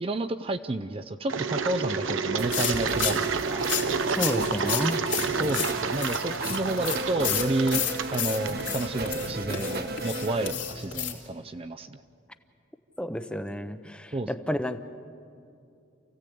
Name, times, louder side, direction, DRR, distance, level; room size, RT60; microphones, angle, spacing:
voice 1, 0.0-3.6 5.4-7.8 8.1-12.0 14.1-14.3, right 2 dB, 30° right, 9 dB, 0.5 m, -30 dB
Engine, 1.3-9.1, right 5 dB, 75° right, 0.9 m, -30 dB
sound 1, 2.4-10.5, right 2 dB, 50° right, 1.4 m, -35 dB
sound 2, 2.5-11.1, left 9 dB, 70° left, 2.8 m, -33 dB
voice 2, 4.1-5.1 13.0-14.8, equal, 5° left, 10 dB, 0.7 m, -31 dB
28.5 x 16.0 x 8.5 m, 2.4 s
head